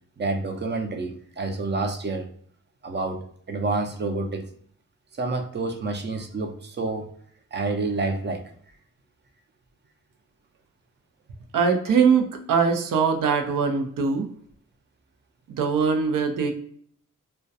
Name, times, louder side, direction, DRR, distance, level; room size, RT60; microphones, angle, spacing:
voice 1, 0.2-2.3 2.8-4.5 5.2-7.1 7.5-8.5, right 3 dB, 35° right, 5 dB, 0.5 m, -28 dB
voice 2, 11.5-14.3 15.5-16.5, right 5 dB, 80° right, 5 dB, 0.5 m, -22 dB
2.3 x 2.2 x 2.5 m, 0.62 s
cardioid pair, 65°, 32 cm